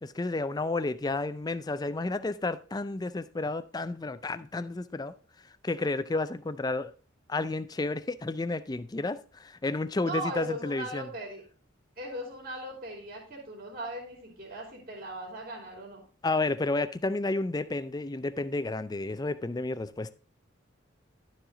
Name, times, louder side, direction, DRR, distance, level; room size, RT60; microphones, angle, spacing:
voice 1, 0.0-5.1 5.6-6.9 7.3-11.1 16.2-20.1, left 2 dB, 20° left, 0.4 m, -31 dB
voice 2, 10.0-11.4 12.0-16.0, right 1 dB, 45° right, 2.7 m, -38 dB
11.5 x 4.9 x 3.8 m
head